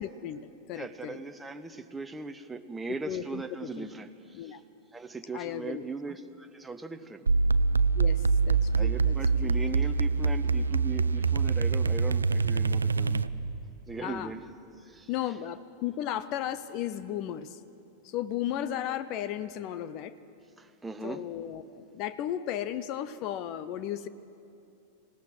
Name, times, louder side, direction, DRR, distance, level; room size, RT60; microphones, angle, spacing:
voice 1, 0.0-1.2 3.1-3.4 3.8-3.9 4.3-4.6 5.3-5.9 7.9-9.2 9.4-9.5 14.0-14.3 15.1-17.6 18.0-20.1 21.0-24.1, left 11 dB, 40° left, 15 dB, 0.7 m, -35 dB
voice 2, 0.7-4.6 4.9-7.3 8.7-13.3 13.9-14.5 14.8-15.1 20.6-21.3, right 4 dB, 10° right, 7 dB, 0.9 m, -39 dB
sound 1, 7.3-13.6, right 4 dB, 75° right, 0.4 m, -25 dB
25.5 x 17.5 x 6.4 m, 2.7 s
figure-of-eight pair, 90°, 0 cm